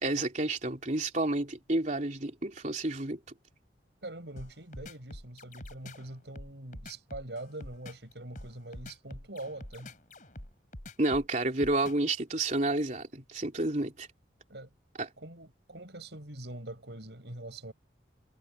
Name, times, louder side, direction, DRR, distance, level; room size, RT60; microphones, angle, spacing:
voice 1, 0.0-3.2 11.0-14.1 15.0-15.1, right 2 dB, 45° right, 3.2 m, -30 dB
voice 2, 4.0-9.9 14.5-14.7 15.2-17.7, right 1 dB, 75° right, 5.6 m, -43 dB
sound 1, 4.4-12.1, left 1 dB, 45° left, 4.0 m, -46 dB
head